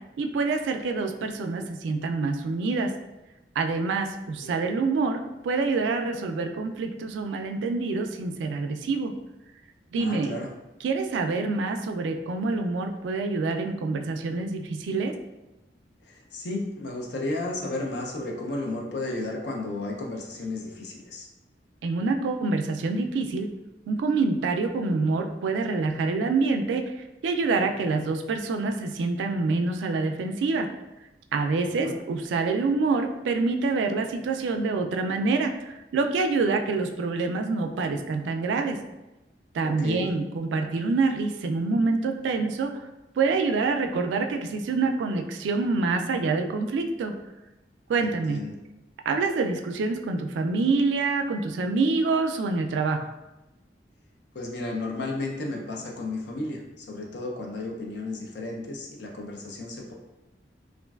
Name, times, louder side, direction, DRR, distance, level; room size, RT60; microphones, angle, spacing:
voice 1, 0.2-2.9 3.6-9.1 9.9-10.3 10.8-15.1 21.8-23.5 23.9-26.8 27.2-30.7 31.3-38.8 39.5-42.7 43.2-47.1 47.9-48.4 49.1-53.1, right 3 dB, 85° right, 5 dB, 0.3 m, -26 dB
voice 2, 9.9-10.5 16.0-21.3 31.6-32.0 39.6-40.1 48.0-48.5 54.3-59.9, left 2 dB, 70° left, 0 dB, 0.5 m, -33 dB
3.0 x 2.5 x 2.3 m, 1.0 s
head